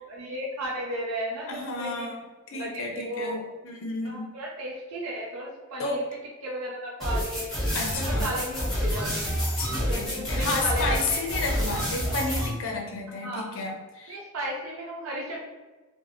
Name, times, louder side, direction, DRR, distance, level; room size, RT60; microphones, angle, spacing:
voice 1, 0.1-2.1 2.5-3.4 4.0-6.0 6.4-7.5 7.9-9.3 9.8-11.4 13.2-13.7 14.1-15.5, equal, 80° right, -3 dB, 0.5 m, -34 dB
voice 2, 1.5-2.2 2.5-4.3 5.8-6.0 7.7-8.3 9.6-14.2, left 3 dB, 65° left, 1 dB, 0.5 m, -32 dB
sound 1, 7.0-12.5, equal, ahead, 1.0 m, -28 dB
3.2 x 2.1 x 2.5 m, 1.2 s
head